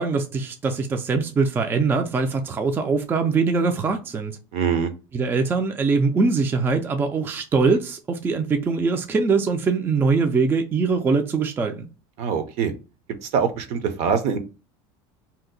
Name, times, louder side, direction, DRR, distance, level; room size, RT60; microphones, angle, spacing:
voice 1, 0.0-4.4 5.1-11.9, right 4 dB, 15° right, 0.3 m, -22 dB
voice 2, 4.5-4.9 12.2-12.7 13.2-14.4, right 6 dB, 60° right, 0.6 m, -23 dB
2.7 x 2.1 x 3.8 m
supercardioid pair, 130°, 12 cm